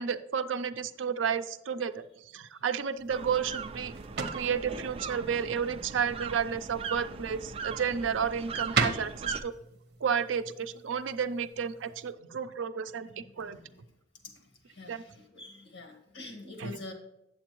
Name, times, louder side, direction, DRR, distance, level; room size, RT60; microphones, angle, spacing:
voice 1, 0.0-9.5 10.0-13.1 13.4-13.6 14.9-15.0 16.6-16.8, right 7 dB, 90° right, 11 dB, 0.5 m, -32 dB
sound 1, 3.0-12.1, right 4 dB, 60° right, 0.8 m, -39 dB
sound 2, 3.1-9.4, right 5 dB, 30° right, 0.4 m, -39 dB
voice 2, 13.1-13.8 14.7-16.9, left 2 dB, 85° left, 4 dB, 1.7 m, -46 dB
8.3 x 7.8 x 3.0 m, 0.85 s
head